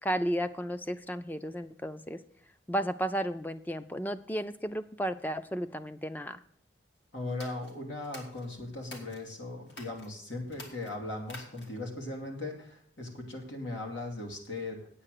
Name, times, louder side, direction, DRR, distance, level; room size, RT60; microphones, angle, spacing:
voice 1, 0.0-2.2 2.7-6.4, equal, 10° left, 12 dB, 0.4 m, -33 dB
voice 2, 7.1-14.8, left 2 dB, 90° left, 1 dB, 2.8 m, -38 dB
sound 1, 7.3-9.2 9.7-10.1 10.5-11.9, left 2 dB, 75° left, 2.6 m, -49 dB
8.7 x 8.6 x 6.6 m, 0.62 s
head